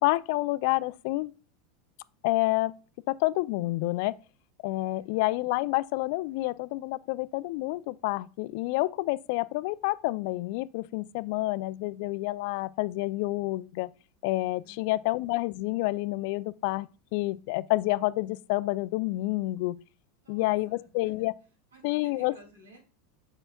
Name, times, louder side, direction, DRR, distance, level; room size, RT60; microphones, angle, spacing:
voice 1, 0.0-1.3 2.2-2.7 3.1-4.2 4.6-13.9 14.2-19.8 20.3-21.3 21.8-22.3, left 20 dB, 60° left, 0.3 m, -29 dB
voice 2, 20.2-21.1 21.7-22.8, right 2 dB, 85° right, 2.5 m, -54 dB
7.7 x 6.3 x 2.3 m
hypercardioid pair, 85°, 0 cm